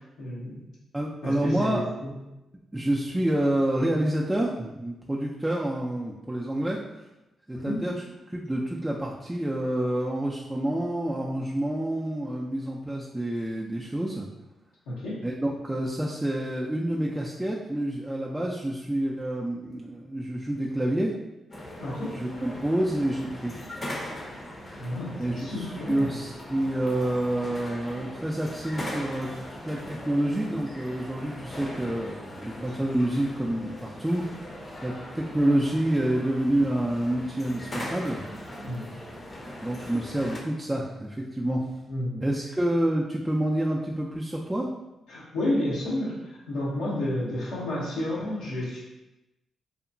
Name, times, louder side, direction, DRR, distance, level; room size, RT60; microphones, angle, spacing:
voice 1, 0.2-0.6 1.2-1.8 7.5-7.8 14.9-15.2 21.8-22.1 24.7-26.1 38.6-38.8 41.9-42.2 45.1-48.8, left 1 dB, 90° left, -7 dB, 0.7 m, -31 dB
voice 2, 0.9-1.9 2.7-7.1 7.5-14.3 15.2-21.1 22.1-23.7 25.2-34.4 34.8-38.3 39.6-41.7 42.2-44.7, right 1 dB, 10° right, -3 dB, 0.3 m, -28 dB
sound 1, 21.5-40.4, left 1 dB, 40° left, 0.6 m, -40 dB
2.8 x 2.1 x 2.5 m, 0.97 s
supercardioid pair, 50°, 0 cm